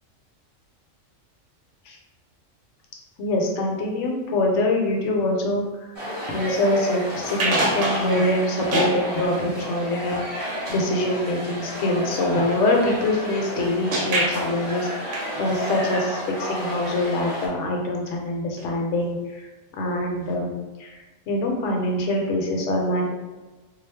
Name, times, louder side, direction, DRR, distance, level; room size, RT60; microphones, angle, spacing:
voice 1, 3.2-5.6 6.3-15.1 15.4-19.5 19.7-20.9 21.3-23.1, left 1 dB, 70° left, 0 dB, 0.9 m, -24 dB
sound 1, 5.9-17.5, equal, 40° right, 1.0 m, -31 dB
sound 2, 7.3-8.2 8.7-9.0 13.9-14.4 15.1-15.5 18.6-18.7 19.0-19.1 20.3-20.4, right 1 dB, 65° right, 1.0 m, -24 dB
2.4 x 2.0 x 3.2 m, 1.2 s
omnidirectional pair, 1.4 m